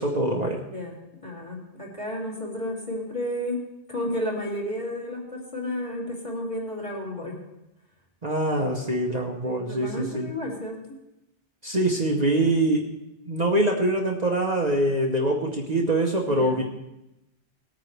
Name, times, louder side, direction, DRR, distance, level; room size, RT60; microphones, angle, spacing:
voice 1, 0.0-0.6 8.2-10.3 11.6-12.9 13.3-16.6, right 1 dB, 40° right, 0 dB, 1.1 m, -24 dB
voice 2, 0.6-7.4 9.4-10.8 16.3-16.6, left 1 dB, 30° left, -3 dB, 2.9 m, -32 dB
19.0 x 9.1 x 3.3 m, 0.91 s
omnidirectional pair, 1.1 m